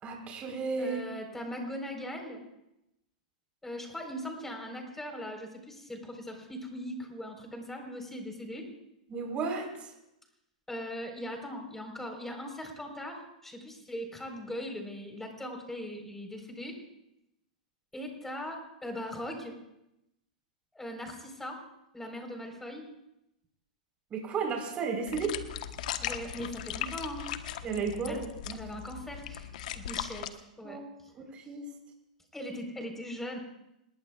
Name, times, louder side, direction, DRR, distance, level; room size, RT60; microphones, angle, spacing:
voice 1, 0.0-1.0 9.1-9.9 24.1-25.4 27.6-28.2 28.5-28.6 30.6-30.8 31.1-31.6, right 5 dB, 30° right, 1 dB, 4.2 m, -33 dB
voice 2, 0.8-2.4 3.6-8.7 10.7-16.8 17.9-19.6 20.7-21.6 21.9-22.8 26.0-27.3 28.1-28.2 28.5-29.5 29.7-30.8 32.3-33.4, equal, 5° left, 3 dB, 4.4 m, -40 dB
sound 1, 25.1-30.3, left 10 dB, 65° left, 1.2 m, -38 dB
27.0 x 20.5 x 2.4 m, 0.87 s
hypercardioid pair, 115°, 4 cm